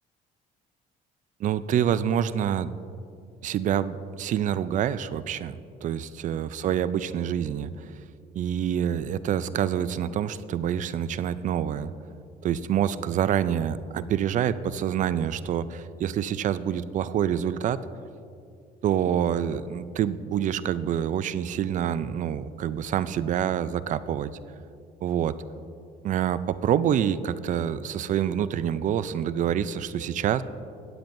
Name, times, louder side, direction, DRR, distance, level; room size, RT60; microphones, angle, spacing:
voice 1, 1.4-2.7 3.4-5.6 5.8-7.7 8.3-11.9 12.4-17.8 18.8-24.3 25.0-25.3 26.0-30.4, right 9 dB, 50° right, 15 dB, 0.4 m, -26 dB
15.5 x 8.8 x 2.6 m, 2.4 s
cardioid pair, 110°, 17 cm